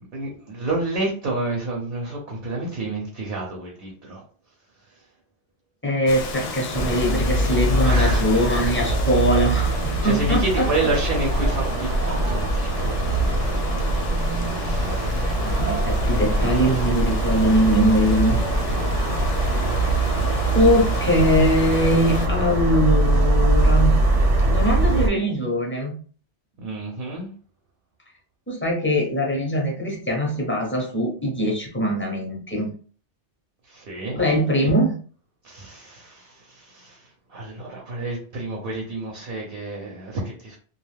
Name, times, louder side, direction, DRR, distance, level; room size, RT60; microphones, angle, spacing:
voice 1, 0.1-4.2 7.8-8.4 10.0-13.8 14.3-15.2 16.4-16.8 17.2-17.5 26.6-27.3 33.7-34.2 35.4-40.6, right 2 dB, 55° right, 0 dB, 0.8 m, -30 dB
voice 2, 5.8-10.9 15.4-18.4 20.5-24.0 24.5-25.9 28.5-32.7 34.1-35.0, equal, 10° left, -2 dB, 0.7 m, -22 dB
Rain, 6.0-22.3, left 3 dB, 65° left, 0.7 m, -33 dB
sound 1, 6.7-25.1, right 2 dB, 80° right, 1.1 m, -22 dB
2.4 x 2.3 x 3.2 m, 0.42 s
omnidirectional pair, 1.2 m